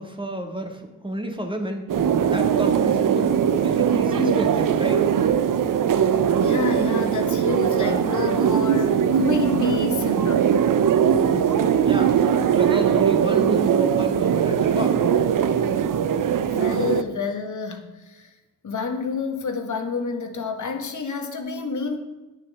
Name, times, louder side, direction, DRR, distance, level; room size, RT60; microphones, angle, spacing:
voice 1, 0.0-1.8 2.2-5.1 11.3-15.0, right 1 dB, 15° right, 3 dB, 1.9 m, -31 dB
sound 1, 1.9-17.0, right 8 dB, 75° right, 0.7 m, -20 dB
voice 2, 6.4-10.5 11.5-11.6 16.4-18.3 18.6-22.0, left 4 dB, 65° left, 4 dB, 1.6 m, -29 dB
8.9 x 6.6 x 7.6 m, 1.1 s
cardioid pair, 65°, 33 cm